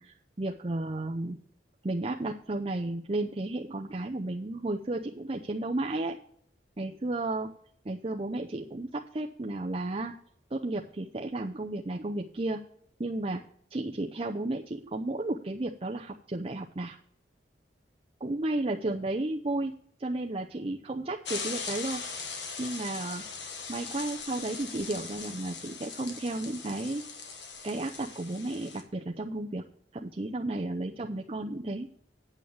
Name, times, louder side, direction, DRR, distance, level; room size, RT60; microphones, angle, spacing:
voice 1, 0.0-1.4 1.8-6.2 6.8-7.5 7.9-10.1 10.5-12.6 13.0-13.4 13.7-17.0 18.2-19.7 20.0-22.0 22.6-23.2 23.7-27.1 27.6-29.6 29.9-31.9, right 2 dB, 35° right, 1 dB, 0.6 m, -33 dB
sound 1, 21.2-28.8, left 5 dB, 90° left, 1.5 m, -40 dB
9.0 x 6.3 x 7.0 m, 0.63 s
head